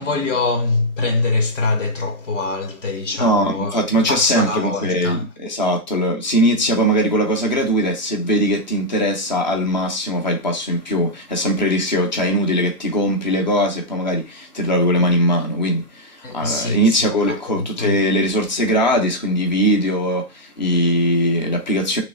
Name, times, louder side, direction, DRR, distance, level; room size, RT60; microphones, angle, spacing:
voice 1, 0.0-5.2 16.2-18.0, left 3 dB, 55° left, 0.8 m, -23 dB
voice 2, 3.2-22.0, equal, 30° left, 0.5 m, -20 dB
3.1 x 3.0 x 4.0 m
hypercardioid pair, 170°, 46 cm